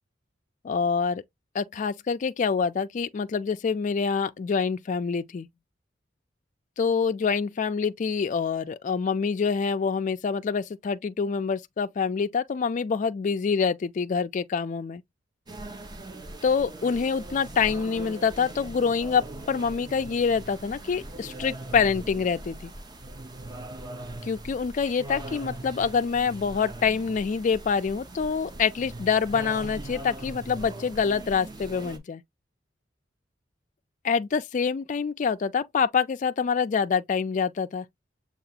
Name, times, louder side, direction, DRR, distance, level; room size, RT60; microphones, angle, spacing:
voice 1, 0.6-1.2 1.5-5.5 6.8-15.0 16.4-22.7 24.2-32.2 34.0-37.9, left 5 dB, 45° left, 0.3 m, -26 dB
sound 1, 15.5-32.0, right 1 dB, 25° right, 0.6 m, -40 dB
6.7 x 2.4 x 2.7 m
head